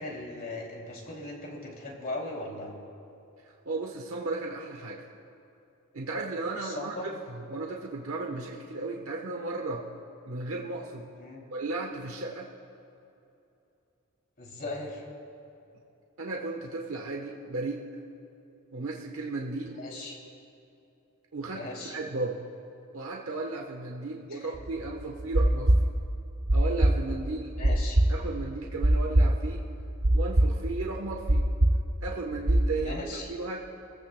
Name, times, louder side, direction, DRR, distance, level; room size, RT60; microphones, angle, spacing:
voice 1, 0.0-2.7 6.6-7.1 11.2-11.5 14.4-15.0 19.8-20.2 21.5-22.0 24.2-24.5 27.6-28.0 32.8-33.3, left 2 dB, 45° left, -1 dB, 2.8 m, -38 dB
voice 2, 3.6-5.0 5.9-6.9 7.3-9.8 10.2-11.1 11.5-12.5 16.2-17.8 18.7-19.8 21.3-21.6 21.9-22.5 22.9-25.7 26.5-27.6 28.1-29.6 30.1-31.5 32.0-33.6, right 3 dB, 75° right, -1 dB, 1.1 m, -35 dB
sound 1, 24.5-32.6, right 1 dB, 55° right, 1.1 m, -23 dB
26.5 x 15.0 x 2.2 m, 2.8 s
head